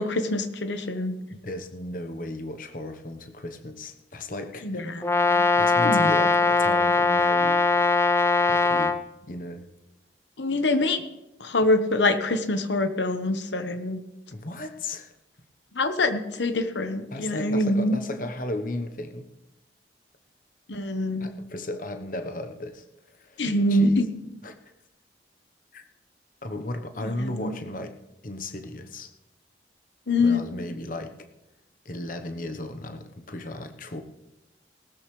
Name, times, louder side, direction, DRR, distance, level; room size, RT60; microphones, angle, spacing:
voice 1, 0.0-1.2 4.6-5.5 5.8-6.1 10.4-11.0 11.4-14.0 15.7-18.0 20.7-21.3 23.4-24.1 27.0-27.5 30.1-30.4, left 2 dB, 85° left, 8 dB, 1.1 m, -25 dB
voice 2, 1.3-4.8 5.3-7.7 7.9-9.0 9.3-9.7 14.3-15.1 17.1-19.3 21.2-24.0 24.4-24.6 25.7-25.8 26.4-28.0 28.2-29.1 30.2-31.1 31.8-34.0, left 1 dB, 45° left, 7 dB, 1.0 m, -35 dB
Brass instrument, 5.0-9.0, left 3 dB, 15° left, 0.5 m, -21 dB
18.5 x 13.0 x 3.2 m, 0.91 s
head